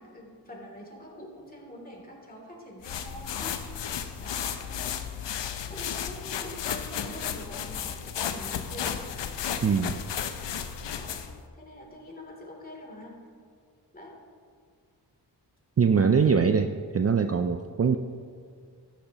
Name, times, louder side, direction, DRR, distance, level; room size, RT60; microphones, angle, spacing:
voice 1, 0.0-3.5 4.1-5.3 5.7-9.1 10.9-11.2 11.5-13.2 13.9-14.1, left 1 dB, 20° left, -2 dB, 3.1 m, -45 dB
sound 1, 2.8-11.4, left 8 dB, 80° left, 0.8 m, -34 dB
voice 2, 9.6-10.0 15.8-18.0, right 6 dB, 35° right, 7 dB, 0.5 m, -23 dB
12.5 x 10.5 x 3.0 m, 2.1 s
cardioid pair, 55°, 42 cm